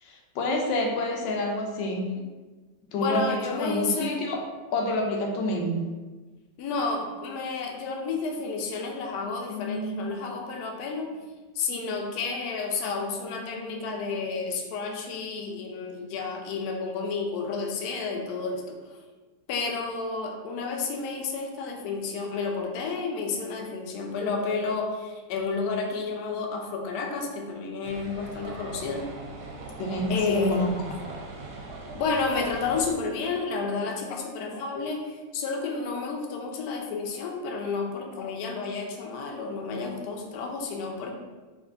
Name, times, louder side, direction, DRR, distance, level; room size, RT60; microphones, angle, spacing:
voice 1, 0.0-2.1 2.9-4.4 4.7-5.8 29.8-30.7, left 1 dB, 85° left, 1 dB, 1.3 m, -28 dB
voice 2, 3.0-4.3 6.6-11.1 11.5-18.8 19.5-29.0 30.1-30.6 31.9-41.1, left 4 dB, 70° left, 1 dB, 1.0 m, -31 dB
sound 1, 27.8-32.9, right 3 dB, 70° right, 1.1 m, -40 dB
3.2 x 2.5 x 3.8 m, 1.3 s
omnidirectional pair, 1.9 m